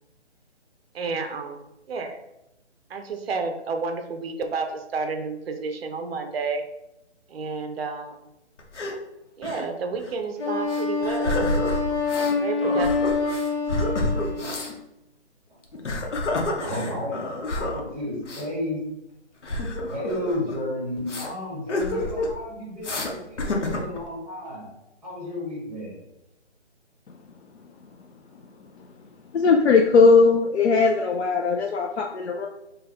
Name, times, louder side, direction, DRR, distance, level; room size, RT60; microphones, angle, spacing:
voice 1, 0.9-1.6 1.9-2.2 2.9-6.6 7.3-8.3 9.4-11.5 12.4-13.2, right 4 dB, 60° right, 6 dB, 0.5 m, -30 dB
sound 1, 8.6-9.0 9.4-9.7 10.0-10.1 10.7-12.3 12.6-14.7 15.6-17.8 18.2-18.4 19.4-20.6 21.1-21.3 21.7-22.4 22.8-23.1 23.4-24.0, left 1 dB, 90° left, 0.9 m, -28 dB
Wind instrument woodwind instrument, 10.4-14.7, left 4 dB, 25° left, 1.4 m, -26 dB
voice 2, 16.6-17.2 17.5-18.8 19.5-24.6 25.0-26.0, left 1 dB, 5° right, -6 dB, 0.7 m, -32 dB
voice 3, 29.3-32.5, left 4 dB, 70° left, 1 dB, 0.5 m, -19 dB
3.4 x 2.2 x 3.3 m, 0.89 s
hypercardioid pair, 160°, 35 cm